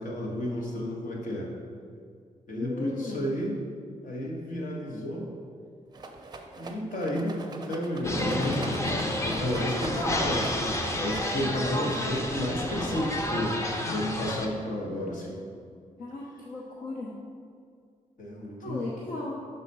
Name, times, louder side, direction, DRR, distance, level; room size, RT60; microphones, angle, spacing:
voice 1, 0.0-1.5 2.5-3.6 4.0-5.3 6.6-8.6 9.2-15.4 18.2-18.8, left 1 dB, 70° left, -2 dB, 1.3 m, -32 dB
voice 2, 2.6-3.2 16.0-17.2 18.6-19.4, left 2 dB, 85° left, -4 dB, 0.8 m, -36 dB
Rattle, 5.9-12.6, right 3 dB, 30° right, 0.5 m, -43 dB
sound 1, 8.0-14.5, left 1 dB, 20° left, 0.5 m, -30 dB
5.6 x 4.0 x 5.4 m, 2.2 s
wide cardioid pair, 155°, 14 cm